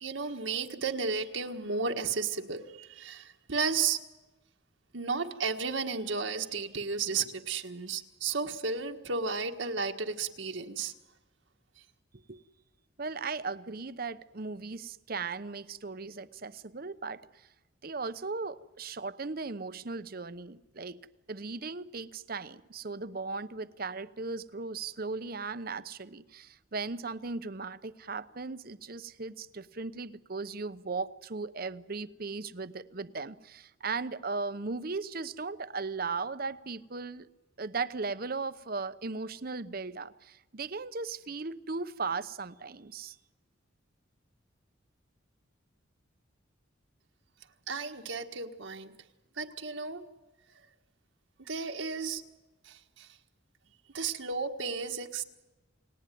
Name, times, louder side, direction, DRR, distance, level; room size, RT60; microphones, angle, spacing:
voice 1, 0.0-4.0 4.9-10.9 47.7-48.9 49.4-50.0 51.5-52.2 52.6-53.1 53.9-55.2, right 5 dB, 75° right, 1.6 m, -33 dB
voice 2, 13.0-17.2 17.8-21.0 21.3-37.3 37.6-43.2, right 4 dB, 50° right, 0.8 m, -37 dB
29.5 x 19.0 x 9.3 m
head